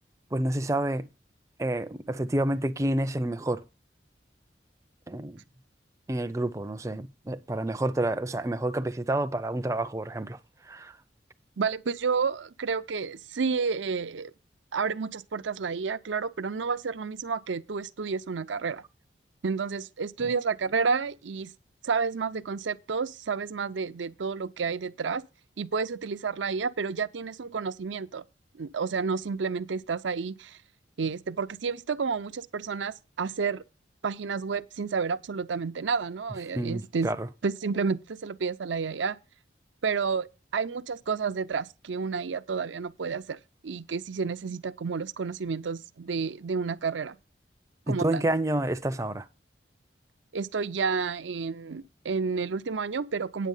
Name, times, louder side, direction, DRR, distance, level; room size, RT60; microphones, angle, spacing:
voice 1, 0.3-1.1 1.6-3.6 5.1-5.4 6.1-10.4 10.6-11.0 36.5-37.3 47.9-49.3, right 1 dB, 15° right, 0.4 m, -29 dB
voice 2, 11.6-14.3 14.7-18.8 19.4-21.5 21.8-25.2 25.6-28.2 28.6-30.6 31.0-33.6 34.0-37.1 37.4-39.2 39.8-40.3 40.5-43.4 43.6-47.2 47.9-48.3 50.3-53.5, right 5 dB, 90° right, 0.6 m, -30 dB
9.3 x 7.4 x 5.4 m
head